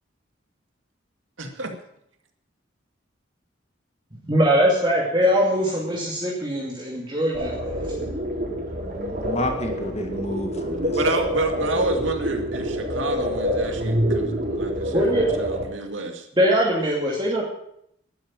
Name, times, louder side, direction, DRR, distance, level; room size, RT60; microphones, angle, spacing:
voice 1, 1.4-1.8 10.9-16.3, right 2 dB, 75° right, 5 dB, 2.3 m, -29 dB
voice 2, 4.2-7.5 14.9-15.3 16.4-17.4, equal, 25° right, -4 dB, 2.5 m, -21 dB
sound 1, 7.3-15.6, equal, 45° right, 4.5 m, -27 dB
voice 3, 9.1-11.3, left 1 dB, 35° left, 5 dB, 2.0 m, -30 dB
12.0 x 10.0 x 8.9 m, 0.73 s
head